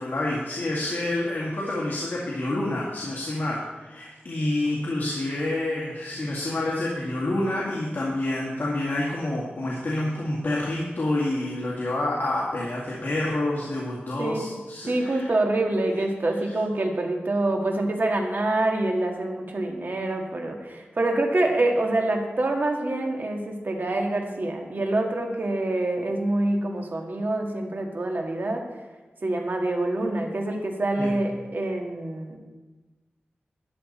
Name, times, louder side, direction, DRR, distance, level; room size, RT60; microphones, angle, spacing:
voice 1, 0.0-15.2 31.0-31.1, left 1 dB, 60° left, -5 dB, 2.0 m, -28 dB
voice 2, 14.9-28.8 29.2-32.4, right 2 dB, 55° right, 2 dB, 1.7 m, -26 dB
12.0 x 10.0 x 4.2 m, 1.2 s
wide cardioid pair, 95°, 4 cm